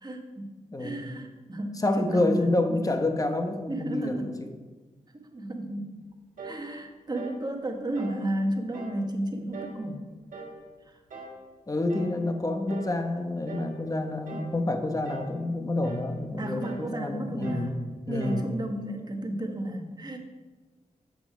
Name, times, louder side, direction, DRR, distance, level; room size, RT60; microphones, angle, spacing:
voice 1, 0.0-0.5 0.8-2.8 3.7-4.4 5.1-5.9 6.4-10.1 10.8-11.0 16.4-17.7 18.1-20.2, right 1 dB, 30° right, 3 dB, 1.4 m, -33 dB
voice 2, 0.7-1.1 1.8-4.2 11.7-17.7 18.1-18.5, left 2 dB, 25° left, 6 dB, 1.0 m, -28 dB
sound 1, 6.4-6.7 7.1-7.4 7.9-8.2 8.7-9.0 9.5-9.8 10.3-10.6 11.1-11.4 11.9-12.2 12.7-13.0 13.5-13.8 14.3-14.6 15.0-15.4 15.8-16.1 16.6-16.9 17.4-17.7 18.2-18.5, right 3 dB, 85° right, 1.5 m, -42 dB
7.6 x 6.1 x 4.9 m, 1.3 s
cardioid pair, 60°, 14 cm